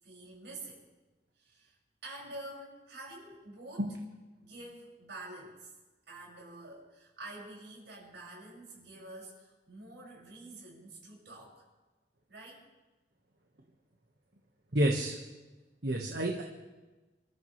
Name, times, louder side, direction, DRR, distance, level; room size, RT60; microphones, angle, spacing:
voice 1, 0.0-0.8 1.4-1.8 2.0-3.9 4.4-5.7 6.1-11.6 12.3-12.6, right 2 dB, 85° right, -3 dB, 6.2 m, -48 dB
voice 2, 14.7-15.2 15.8-16.4, right 1 dB, 70° right, 0 dB, 1.5 m, -29 dB
28.0 x 14.0 x 3.3 m, 1.2 s
head